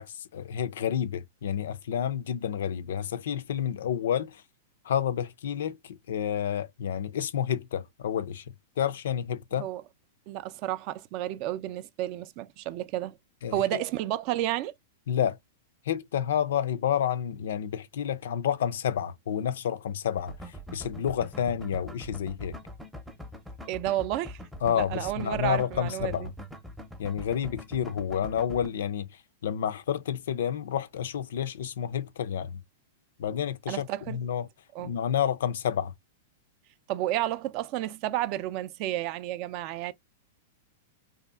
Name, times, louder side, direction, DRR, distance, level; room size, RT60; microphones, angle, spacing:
voice 1, 0.0-4.4 4.8-8.4 8.8-9.7 13.4-13.8 15.1-15.4 15.9-20.4 20.7-22.6 24.6-26.3 27.0-29.1 29.4-32.6 33.2-34.5 34.8-35.9, left 9 dB, 75° left, 0.4 m, -29 dB
voice 2, 10.3-13.2 13.5-14.7 23.7-24.4 24.7-26.3 33.7-34.2 34.7-35.0 36.9-39.9, right 14 dB, 45° right, 0.3 m, -31 dB
sound 1, 20.2-28.7, equal, 5° right, 0.6 m, -43 dB
2.7 x 2.4 x 2.3 m
hypercardioid pair, 130°, 0 cm